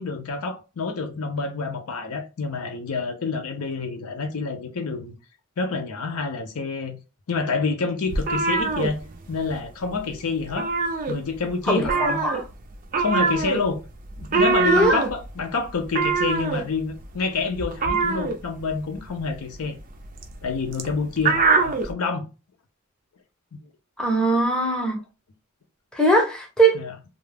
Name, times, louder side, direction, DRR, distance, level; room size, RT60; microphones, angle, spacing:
voice 1, 0.0-5.1 5.6-7.0 7.3-9.0 9.3-10.7 11.1-12.2 13.0-13.8 14.2-19.8 20.4-22.3 26.7-26.9, left 4 dB, 70° left, 0.5 m, -28 dB
sound 1, 8.1-9.6 9.9-10.1 10.4-11.5 11.8-21.9, right 4 dB, 40° right, 0.4 m, -24 dB
voice 2, 11.7-12.4 14.7-15.0 24.0-25.0 25.9-26.8, right 2 dB, 5° left, 0.7 m, -21 dB
2.3 x 2.0 x 3.2 m
head